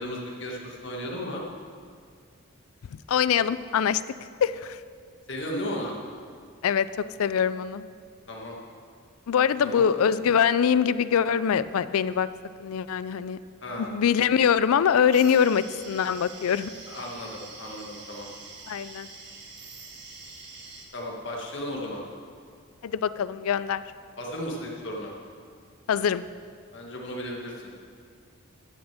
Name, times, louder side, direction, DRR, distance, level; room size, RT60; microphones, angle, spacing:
voice 1, 0.0-1.4 5.3-5.9 8.3-8.5 9.6-9.9 13.6-13.9 16.9-18.3 20.9-22.0 24.2-25.1 26.7-27.6, equal, 55° left, -1 dB, 1.6 m, -35 dB
voice 2, 3.1-4.0 4.4-4.8 6.6-7.9 9.3-12.3 12.6-13.4 13.8-16.7 18.7-19.1 22.8-23.8 25.9-26.2, left 7 dB, 90° left, 16 dB, 0.4 m, -23 dB
sound 1, 15.1-20.8, right 3 dB, 50° right, 1.5 m, -45 dB
11.5 x 6.2 x 7.4 m, 2.1 s
head